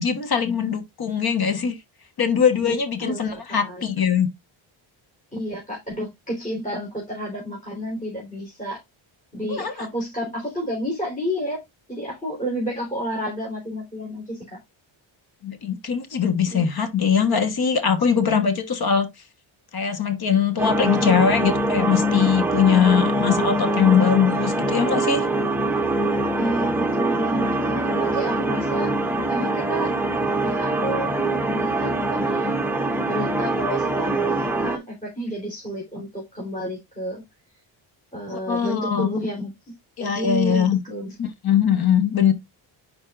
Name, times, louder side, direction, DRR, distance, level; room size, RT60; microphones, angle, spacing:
voice 1, 0.0-1.8 2.2-4.3 9.5-9.7 15.4-19.1 19.7-25.3 38.3-39.2 40.0-40.8 41.2-42.3, left 7 dB, 50° left, 1.2 m, -21 dB
voice 2, 2.6-3.8 5.3-8.8 9.3-11.6 11.9-14.6 16.5-16.7 26.4-28.9 29.3-29.9 30.4-32.5 33.0-37.2 38.1-41.2, equal, 15° left, 3.6 m, -31 dB
sound 1, 20.6-34.8, right 1 dB, 5° right, 0.8 m, -23 dB
10.5 x 4.7 x 2.4 m
wide cardioid pair, 175°, 49 cm